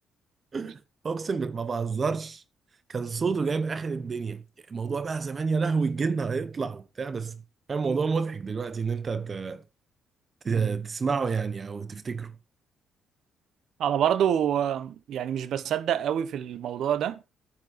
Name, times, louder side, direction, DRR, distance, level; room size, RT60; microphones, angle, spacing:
voice 1, 0.5-2.4 2.9-7.4 7.7-9.6 10.4-12.3, right 5 dB, 40° right, 1.0 m, -29 dB
voice 2, 13.8-17.2, right 9 dB, 75° right, 1.3 m, -27 dB
10.5 x 9.8 x 4.5 m
cardioid pair, 90°, 0 cm